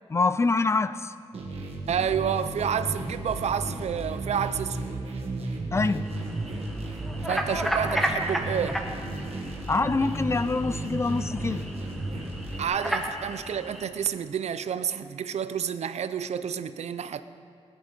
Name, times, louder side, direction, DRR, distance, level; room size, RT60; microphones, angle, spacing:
voice 1, 0.1-1.1 5.7-6.1 9.7-11.7, left 3 dB, 25° left, 0.3 m, -25 dB
sound 1, 1.3-12.6, right 2 dB, 65° right, 1.8 m, -34 dB
voice 2, 1.9-5.0 7.3-8.8 12.6-17.2, right 8 dB, 90° right, 0.5 m, -29 dB
sound 2, 6.0-13.9, equal, ahead, 1.0 m, -33 dB
17.0 x 10.5 x 5.2 m
wide cardioid pair, 150°, 11 cm